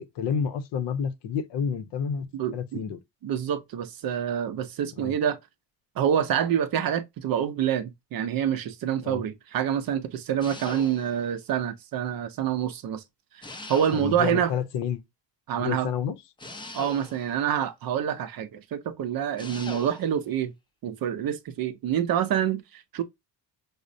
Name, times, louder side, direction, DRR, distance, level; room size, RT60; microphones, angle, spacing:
voice 1, 0.0-2.3 2.5-3.0 5.0-5.1 9.0-9.2 13.9-15.0 15.6-16.1, left 7 dB, 70° left, 0.7 m, -29 dB
voice 2, 2.3-2.8 3.2-5.4 6.0-13.0 13.3-13.4 13.7-14.5 15.5-15.9 16.7-20.5 20.8-23.0, right 9 dB, 55° right, 0.5 m, -27 dB
sound 1, 10.4-11.3 13.4-14.4 16.4-17.4 19.4-20.2, left 2 dB, 10° left, 0.4 m, -41 dB
5.0 x 2.1 x 2.5 m
cardioid pair, 130°, 44 cm